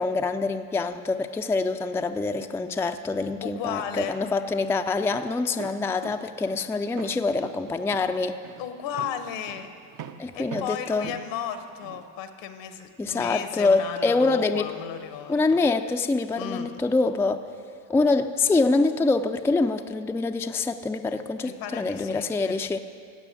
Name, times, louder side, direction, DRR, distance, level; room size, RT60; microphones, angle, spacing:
voice 1, 0.0-8.4 10.2-11.1 13.0-14.7 15.3-17.4 17.9-22.8, left 3 dB, 5° left, 6 dB, 0.4 m, -25 dB
voice 2, 3.4-4.1 8.6-9.7 10.3-15.4 16.4-16.7 21.4-22.6, left 9 dB, 75° left, 9 dB, 1.2 m, -34 dB
Walk footsteps, 5.1-12.1, right 8 dB, 45° right, 0.7 m, -43 dB
16.0 x 5.4 x 8.4 m, 2.3 s
supercardioid pair, 80°, 44 cm